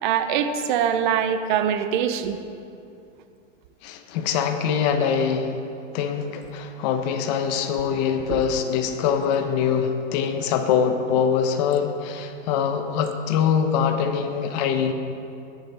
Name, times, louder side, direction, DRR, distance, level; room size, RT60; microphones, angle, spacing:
voice 1, 0.0-2.4 8.3-8.4, right 8 dB, 40° right, 9 dB, 0.7 m, -23 dB
voice 2, 3.8-5.6 5.9-14.9, left 7 dB, 35° left, 7 dB, 0.8 m, -23 dB
13.5 x 10.5 x 3.4 m, 2.6 s
supercardioid pair, 155°, 37 cm